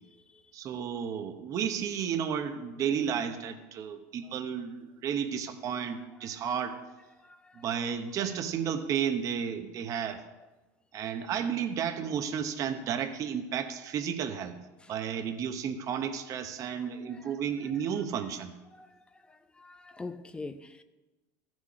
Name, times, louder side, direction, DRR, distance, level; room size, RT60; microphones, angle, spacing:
voice 1, 0.5-6.7 7.5-10.2 10.9-14.6 14.9-18.5, right 8 dB, 40° right, 7 dB, 1.0 m, -32 dB
voice 2, 7.2-7.7 17.1-17.2 18.7-18.9 19.3-20.8, left 3 dB, 10° left, 10 dB, 0.6 m, -44 dB
14.5 x 6.3 x 4.9 m, 1.1 s
supercardioid pair, 135°, 9 cm